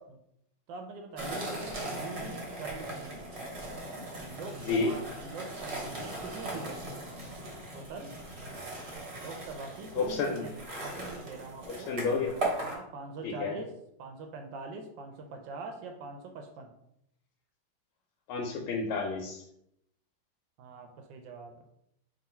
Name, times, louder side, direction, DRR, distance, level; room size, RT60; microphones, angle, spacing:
voice 1, 0.7-3.2 4.2-6.9 7.7-8.1 9.1-12.0 12.6-13.7 14.0-16.7 20.6-21.7, right 3 dB, 75° right, 4 dB, 1.1 m, -43 dB
sound 1, 1.2-12.8, right 1 dB, 50° right, 0.8 m, -39 dB
voice 2, 10.0-10.4 11.7-12.3 13.2-13.6 18.3-19.4, left 4 dB, 85° left, -1 dB, 1.5 m, -30 dB
3.8 x 2.3 x 4.2 m, 0.77 s
omnidirectional pair, 2.3 m